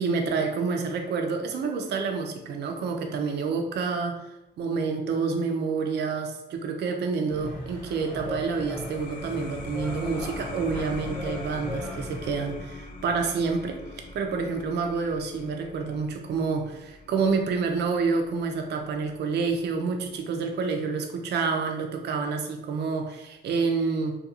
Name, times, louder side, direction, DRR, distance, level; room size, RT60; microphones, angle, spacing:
voice 1, 0.0-4.3 4.6-24.1, right 4 dB, 60° right, 4 dB, 0.4 m, -28 dB
sound 1, 7.3-12.4, left 1 dB, 10° left, 1.0 m, -38 dB
sound 2, 8.4-19.6, left 2 dB, 45° left, 0.4 m, -43 dB
2.3 x 2.3 x 2.9 m, 0.95 s
cardioid pair, 90°, 20 cm